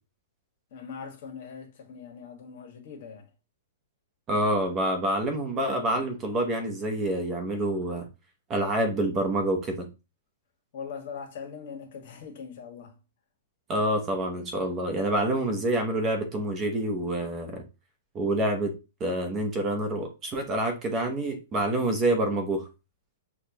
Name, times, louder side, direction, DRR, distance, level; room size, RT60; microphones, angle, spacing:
voice 1, 0.7-3.3 10.7-13.0, left 6 dB, 50° left, 1.4 m, -41 dB
voice 2, 4.3-8.1 8.5-9.9 13.7-17.6 18.1-18.7 19.0-22.7, right 1 dB, 20° right, 0.9 m, -27 dB
6.4 x 2.4 x 2.9 m
hypercardioid pair, 155°, 0 cm